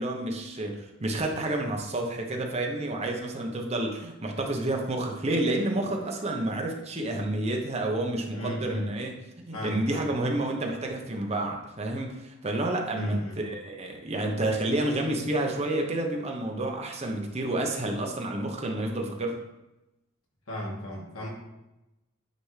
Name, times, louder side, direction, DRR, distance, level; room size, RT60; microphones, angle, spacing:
voice 1, 0.0-19.4, right 1 dB, 30° right, 2 dB, 0.8 m, -30 dB
voice 2, 8.3-8.9 9.5-10.0 12.9-13.4 20.5-21.3, equal, 85° left, -3 dB, 1.9 m, -35 dB
9.2 x 3.6 x 3.2 m, 0.94 s
head